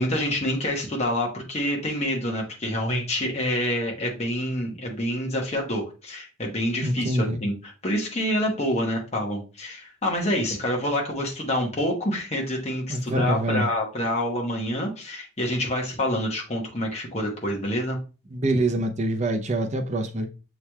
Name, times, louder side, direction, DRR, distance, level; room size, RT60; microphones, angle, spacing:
voice 1, 0.0-7.5 7.8-18.0, left 1 dB, 30° left, 0 dB, 1.0 m, -27 dB
voice 2, 6.8-7.4 12.9-13.7 18.3-20.3, right 1 dB, 35° right, 3 dB, 0.6 m, -25 dB
6.9 x 3.1 x 2.3 m, 0.33 s
head